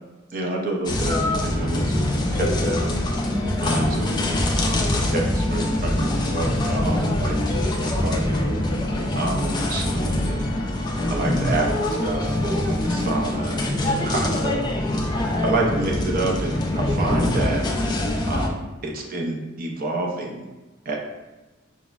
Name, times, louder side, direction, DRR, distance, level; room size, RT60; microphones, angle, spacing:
voice 1, 0.3-3.0 3.6-4.3 4.9-7.3 7.6-8.9 9.1-10.5 11.1-17.6 18.3-20.4 20.9-21.0, right 2 dB, 45° right, 0 dB, 0.5 m, -28 dB
sound 1, 0.9-18.5, left 1 dB, 20° left, 0.3 m, -24 dB
4.8 x 2.0 x 2.3 m, 1.1 s
head